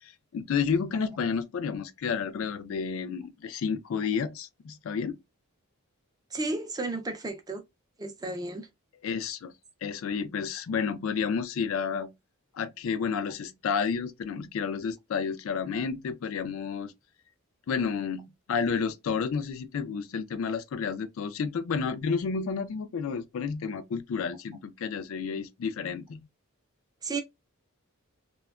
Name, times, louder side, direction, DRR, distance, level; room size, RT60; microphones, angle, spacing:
voice 1, 0.0-5.2 9.0-9.5 9.8-12.1 12.5-16.9 17.7-26.2, left 6 dB, 65° left, 0.3 m, -31 dB
voice 2, 6.3-7.6 8.0-8.7 27.0-27.2, right 2 dB, 15° right, 0.4 m, -33 dB
2.7 x 2.2 x 2.3 m
head